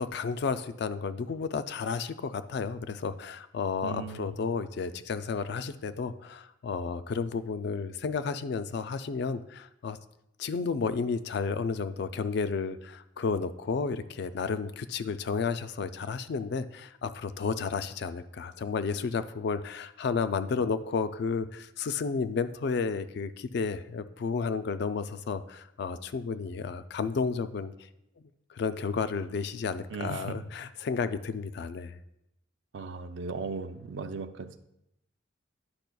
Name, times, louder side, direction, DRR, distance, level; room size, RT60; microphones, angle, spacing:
voice 1, 0.0-10.0 10.4-27.7 28.5-32.0, left 5 dB, 55° left, 12 dB, 0.3 m, -32 dB
voice 2, 3.8-4.4 29.9-30.3 32.7-34.6, right 4 dB, 60° right, 10 dB, 0.4 m, -37 dB
10.5 x 4.9 x 2.3 m, 0.82 s
head